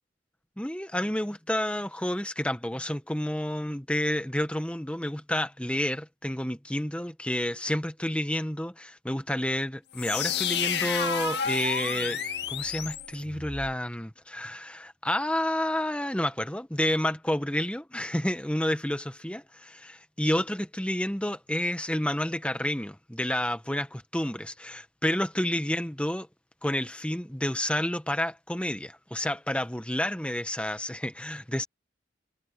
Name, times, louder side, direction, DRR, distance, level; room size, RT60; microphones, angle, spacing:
voice 1, 0.6-12.2 12.5-26.3 26.6-31.6, left 1 dB, 5° left, 1.4 m, -30 dB
sound 1, 9.9-13.7, left 7 dB, 65° left, 1.9 m, -31 dB
head